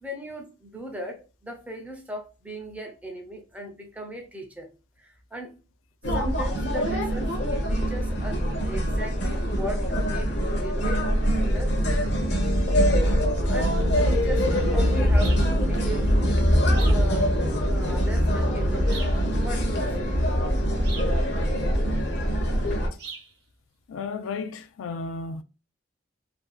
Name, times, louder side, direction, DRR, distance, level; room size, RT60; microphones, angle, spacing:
voice 1, 0.0-4.7 5.0-5.6 6.1-11.1 11.4-11.8 13.5-16.5 16.7-17.4 17.6-19.1 19.4-20.6, right 1 dB, 5° right, 0.5 m, -37 dB
sound 1, 6.0-22.9, equal, 55° left, 0.7 m, -23 dB
sound 2, 15.2-15.5 16.7-17.1 18.9-19.2 20.8-21.2 23.0-23.3, right 5 dB, 55° right, 0.6 m, -39 dB
voice 2, 23.9-25.4, left 4 dB, 90° left, 0.3 m, -33 dB
2.5 x 2.2 x 2.3 m
head